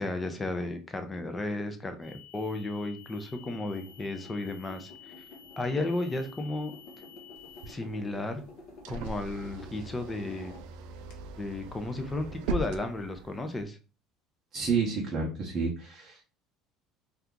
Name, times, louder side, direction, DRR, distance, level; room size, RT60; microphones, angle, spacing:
voice 1, 0.0-5.1 5.6-6.7 7.7-8.4 8.9-10.5 11.4-13.8, left 2 dB, 10° left, 6 dB, 0.4 m, -34 dB
sound 1, 2.0-7.7, left 8 dB, 55° right, 0.9 m, -52 dB
sound 2, 3.4-11.1, left 3 dB, 50° left, 0.8 m, -51 dB
sound 3, 7.4-13.6, right 3 dB, 75° right, 0.4 m, -40 dB
voice 2, 14.5-16.2, right 5 dB, 25° right, -4 dB, 0.8 m, -30 dB
2.8 x 2.3 x 3.5 m, 0.32 s
cardioid pair, 165°, 0 cm